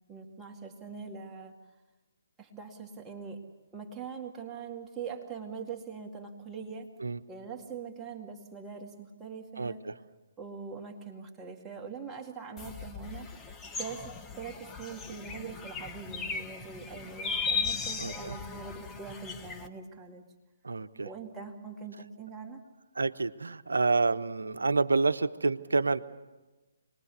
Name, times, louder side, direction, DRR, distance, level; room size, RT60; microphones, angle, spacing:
voice 1, 0.1-1.6 2.4-3.4 3.7-6.9 7.3-9.8 10.4-13.3 13.7-20.2 21.0-22.6, right 5 dB, 10° right, 0 dB, 2.0 m, -42 dB
voice 2, 9.6-9.9 18.0-18.4 20.6-21.1 23.0-26.0, right 3 dB, 75° right, 12 dB, 0.9 m, -28 dB
sound 1, 12.6-19.7, left 5 dB, 15° left, 1.0 m, -37 dB
26.5 x 21.0 x 6.9 m, 1.2 s
figure-of-eight pair, 135°, 0 cm